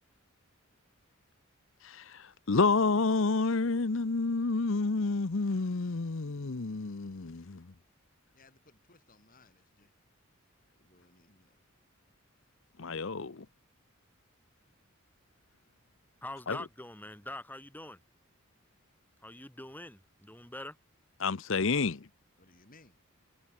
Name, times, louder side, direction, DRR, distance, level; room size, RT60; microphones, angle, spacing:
voice 1, 2.5-7.7 12.8-13.4 16.5-16.6 21.2-22.0, left 3 dB, 60° left, 0.8 m, -29 dB
voice 2, 8.3-9.9 10.7-11.6 22.4-23.0, left 2 dB, 40° left, 5.8 m, -62 dB
voice 3, 16.2-18.0 19.2-20.8, left 1 dB, 10° left, 2.8 m, -44 dB
head